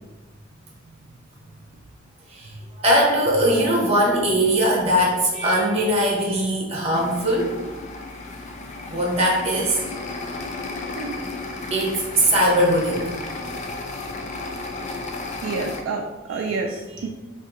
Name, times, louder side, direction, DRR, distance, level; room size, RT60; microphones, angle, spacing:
voice 1, 2.3-7.6 8.9-9.8 11.7-13.2 16.3-16.6, equal, 35° right, -3 dB, 0.9 m, -20 dB
sound 1, 6.9-15.8, left 3 dB, 40° left, 0.4 m, -33 dB
voice 2, 10.9-11.4 15.4-17.1, right 4 dB, 75° right, 2 dB, 0.3 m, -29 dB
2.7 x 2.5 x 3.7 m, 1.1 s
head